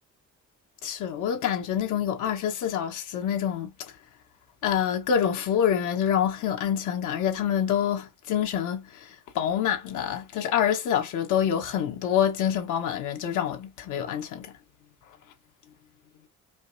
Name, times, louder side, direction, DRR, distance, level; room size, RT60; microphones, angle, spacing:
voice 1, 0.8-3.7 4.6-8.8 9.3-14.5, left 9 dB, 90° left, 1.3 m, -26 dB
5.1 x 2.5 x 2.6 m
cardioid pair, 90°, 30 cm